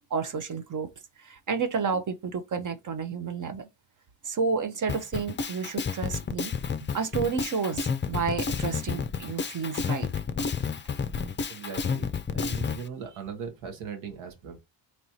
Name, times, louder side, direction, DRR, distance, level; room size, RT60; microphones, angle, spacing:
voice 1, 0.1-0.9 1.2-3.7 4.2-6.5 6.9-10.1, right 5 dB, 40° right, 0.7 m, -30 dB
Drum kit, 4.9-12.8, left 6 dB, 25° left, 0.5 m, -30 dB
voice 2, 11.5-14.6, right 6 dB, 85° right, 1.3 m, -39 dB
4.3 x 3.1 x 2.7 m
supercardioid pair, 65°, 48 cm